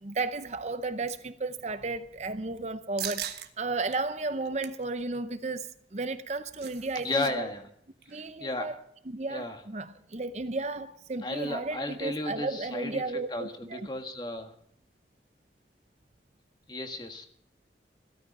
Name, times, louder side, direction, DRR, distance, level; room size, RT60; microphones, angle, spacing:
voice 1, 0.0-7.5 8.1-13.9, right 3 dB, 40° right, 0.7 m, -34 dB
sound 1, 3.0-3.5 3.9-4.0 4.4-4.8 6.1-7.3 7.6-7.7 8.0-8.3, right 11 dB, 65° right, 1.4 m, -39 dB
voice 2, 7.0-7.7 8.4-8.7 9.3-9.6 11.2-13.0 13.3-14.5 16.7-17.3, left 2 dB, 25° left, 1.7 m, -33 dB
17.0 x 13.0 x 5.4 m
head